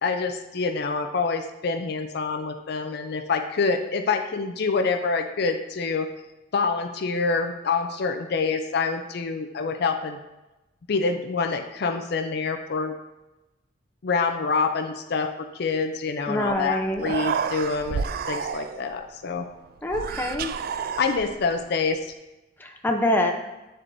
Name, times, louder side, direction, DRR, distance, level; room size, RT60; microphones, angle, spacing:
voice 1, 0.0-6.1 6.5-10.2 10.9-12.9 14.0-19.5 21.0-22.1, left 4 dB, 55° left, 7 dB, 0.4 m, -26 dB
voice 2, 16.3-17.1 19.8-20.5 22.6-23.3, left 1 dB, 10° left, 2 dB, 0.6 m, -25 dB
Human voice, 16.5-16.6 16.9-19.0 19.9-21.6, right 6 dB, 50° right, 0.3 m, -30 dB
8.0 x 7.4 x 2.6 m, 1.0 s
head